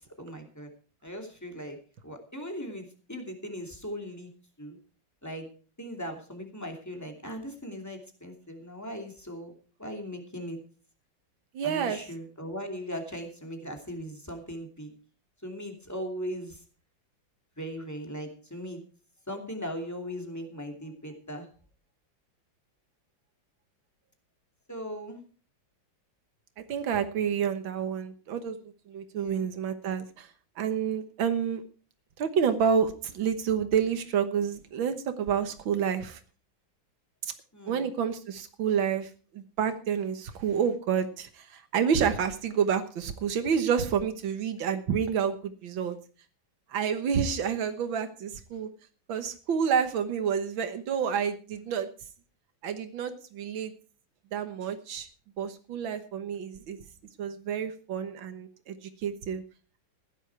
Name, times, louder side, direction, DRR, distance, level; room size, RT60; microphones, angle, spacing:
voice 1, 0.2-0.7 1.0-1.8 2.0-4.3 4.6-4.8 5.2-5.5 5.8-9.5 9.8-10.6 11.6-14.9 15.4-16.6 17.6-18.8 19.3-21.5 24.7-25.2 29.1-29.4 37.5-37.9, equal, 10° left, 3 dB, 2.6 m, -39 dB
voice 2, 11.5-12.0 26.6-28.6 28.9-30.3 30.6-31.6 32.2-36.2 37.2-37.3 37.7-46.0 46.7-48.7 49.1-51.9 52.6-53.7 54.3-55.1 55.4-56.8 57.2-59.4, right 7 dB, 90° right, 8 dB, 2.0 m, -29 dB
16.0 x 11.0 x 4.7 m, 0.39 s
omnidirectional pair, 2.1 m